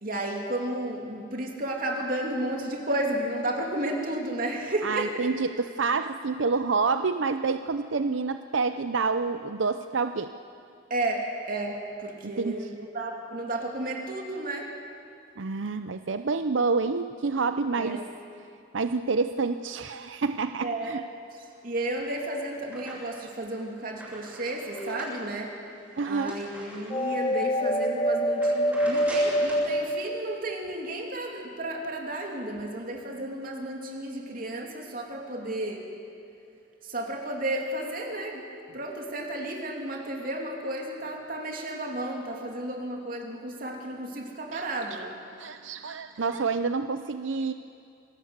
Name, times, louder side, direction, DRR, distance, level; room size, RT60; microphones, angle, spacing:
voice 1, 0.0-5.3 10.9-14.7 17.8-18.1 20.6-21.1 21.4-25.5 26.0-35.9 36.8-38.4 38.7-45.1, right 1 dB, 50° right, 1 dB, 2.9 m, -33 dB
voice 2, 4.8-10.3 12.4-12.7 15.4-18.0 18.7-21.0 26.0-26.4 44.5-45.1 45.4-47.5, right 4 dB, 85° right, 9 dB, 0.6 m, -28 dB
sound 1, 21.8-23.3 23.7-27.3 27.8-27.9 28.3-29.7, right 1 dB, 10° right, 7.2 m, -44 dB
sound 2, 24.7-25.5 26.9-30.7, equal, 25° left, 1.0 m, -26 dB
27.0 x 19.0 x 8.1 m, 2.4 s
head